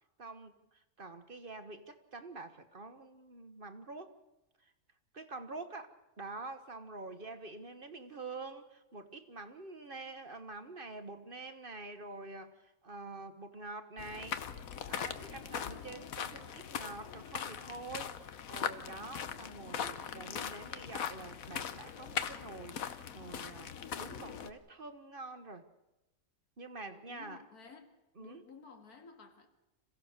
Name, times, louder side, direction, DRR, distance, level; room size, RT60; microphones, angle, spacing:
voice 1, 0.2-4.1 4.6-4.7 5.1-14.4 14.9-25.7 26.6-27.4 28.2-28.4, right 3 dB, 40° right, 1.3 m, -47 dB
sound 1, 14.0-24.5, left 8 dB, 70° left, 1.4 m, -40 dB
voice 2, 26.8-29.5, left 5 dB, 85° left, 2.5 m, -55 dB
27.0 x 16.0 x 6.6 m
omnidirectional pair, 1.6 m